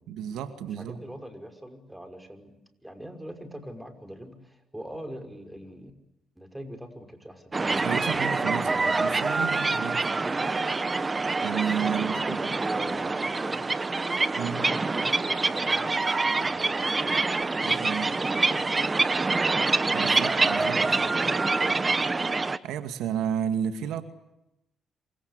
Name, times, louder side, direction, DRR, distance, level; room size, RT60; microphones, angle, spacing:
voice 1, 0.1-1.0 7.8-8.7 9.0-10.1 11.4-12.4 14.3-14.7 17.6-18.2 19.9-20.9 22.4-24.0, right 8 dB, 90° right, 9 dB, 2.3 m, -32 dB
voice 2, 0.6-2.5 2.8-5.9 6.4-9.5 10.2-10.5 11.8-13.8 14.4-19.5 20.8-22.0, equal, 5° right, 7 dB, 5.6 m, -42 dB
sound 1, 7.5-22.6, right 3 dB, 25° right, 1.4 m, -26 dB
28.0 x 25.0 x 8.3 m, 0.88 s
cardioid pair, 90°, 0 cm